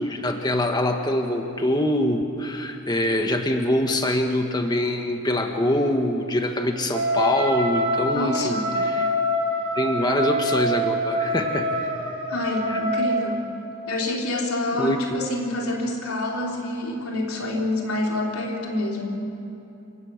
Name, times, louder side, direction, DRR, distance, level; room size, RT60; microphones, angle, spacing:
voice 1, 0.0-9.1 9.8-11.8 12.7-12.8 14.8-15.3, left 1 dB, 20° left, 4 dB, 1.3 m, -24 dB
Wind instrument woodwind instrument, 6.9-13.5, equal, 25° right, 5.7 m, -25 dB
voice 2, 8.1-8.7 12.3-13.4 13.9-19.2, left 1 dB, 85° left, -1 dB, 3.9 m, -27 dB
29.0 x 17.0 x 6.5 m, 2.9 s
head